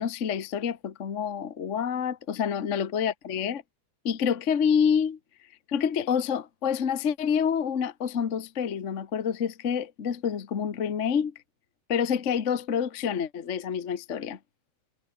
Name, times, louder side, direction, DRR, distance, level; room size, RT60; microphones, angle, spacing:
voice 1, 0.0-3.6 4.0-5.2 5.7-11.3 11.9-14.4, left 7 dB, 60° left, 0.7 m, -27 dB
omnidirectional pair, 3.7 m